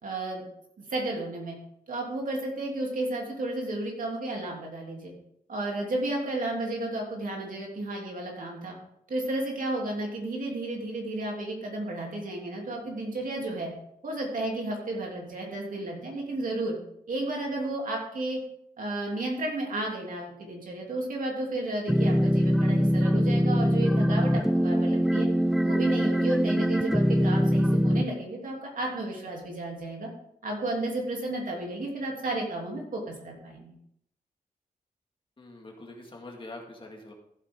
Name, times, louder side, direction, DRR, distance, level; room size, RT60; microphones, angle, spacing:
voice 1, 0.0-0.4 0.8-1.5 1.9-5.1 5.5-8.8 9.1-13.7 14.0-16.8 17.1-18.4 18.8-25.3 25.6-30.1 30.4-33.7, right 2 dB, 65° right, -1 dB, 3.0 m, -32 dB
sound 1, 21.9-28.1, equal, ahead, 0.3 m, -23 dB
voice 2, 35.4-37.1, left 2 dB, 35° left, 0 dB, 2.1 m, -44 dB
14.5 x 8.3 x 3.7 m, 0.74 s
wide cardioid pair, 170°, 15 cm